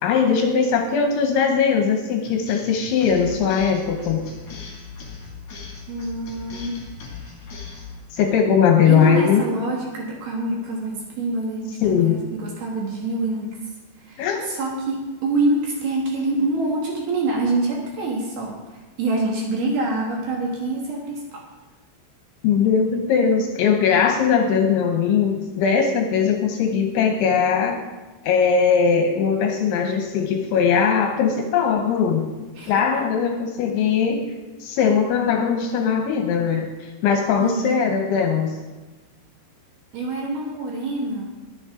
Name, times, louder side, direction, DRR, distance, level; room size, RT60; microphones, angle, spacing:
voice 1, 0.0-4.2 8.1-9.4 11.8-12.2 14.2-14.5 22.4-27.8 28.2-34.3 34.6-38.6, left 6 dB, 75° left, 4 dB, 2.9 m, -20 dB
sound 1, 2.3-8.0, left 5 dB, 45° left, 2.7 m, -38 dB
voice 2, 5.9-6.8 8.9-13.6 14.0-21.4 32.6-32.8 37.4-37.8 39.9-41.3, right 2 dB, 60° right, -2 dB, 3.0 m, -26 dB
21.5 x 7.2 x 3.7 m, 1.2 s
omnidirectional pair, 6.0 m